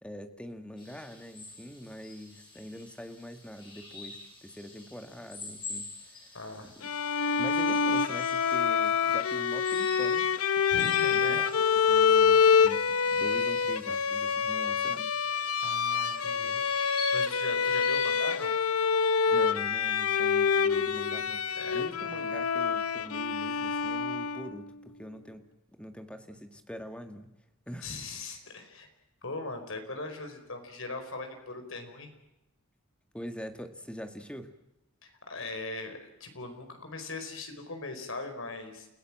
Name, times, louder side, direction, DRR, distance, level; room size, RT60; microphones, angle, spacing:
voice 1, 0.0-5.9 6.1-6.3 6.6-6.7 7.4-10.6 11.1-11.5 11.8-15.1 19.3-25.4 25.7-27.3 27.7-27.9 33.1-34.5, equal, 5° left, 6 dB, 1.7 m, -44 dB
sound 1, 0.8-18.5, left 2 dB, 20° left, 7.6 m, -46 dB
voice 2, 6.3-6.8 10.7-11.4 15.6-16.6 17.1-18.5 21.5-21.8 22.1-22.2 27.8-28.9 29.2-32.1 35.0-38.9, left 3 dB, 65° left, 6 dB, 4.9 m, -40 dB
Bowed string instrument, 6.8-24.6, left 6 dB, 90° left, 0.9 m, -26 dB
29.0 x 17.0 x 7.5 m, 0.93 s
head